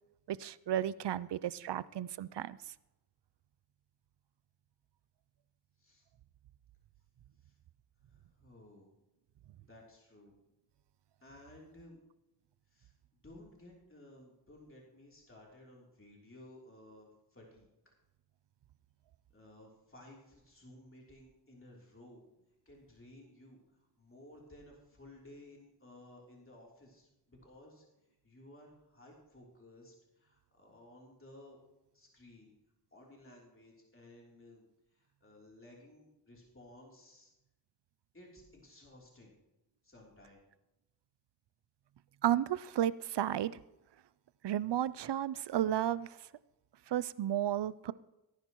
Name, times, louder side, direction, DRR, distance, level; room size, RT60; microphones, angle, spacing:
voice 1, 0.3-2.6 42.2-43.6 44.4-46.1 46.9-47.9, right 11 dB, 75° right, 19 dB, 0.5 m, -33 dB
voice 2, 8.1-8.9 9.6-10.3 11.2-12.0 12.7-17.9 19.3-22.2 22.6-27.8 28.2-31.6 31.9-32.5 32.9-34.6 34.9-37.3 38.1-39.3 39.8-40.4, left 1 dB, 30° left, -2 dB, 3.2 m, -57 dB
17.5 x 10.0 x 3.0 m, 0.96 s
wide cardioid pair, 60°, 42 cm